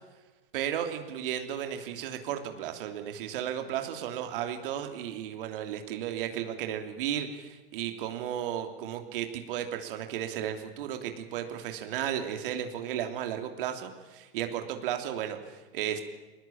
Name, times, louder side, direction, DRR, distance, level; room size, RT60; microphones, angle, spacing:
voice 1, 0.5-16.0, right 10 dB, 65° right, 6 dB, 3.3 m, -34 dB
22.5 x 20.0 x 8.9 m, 1.2 s
hypercardioid pair, 110°, 29 cm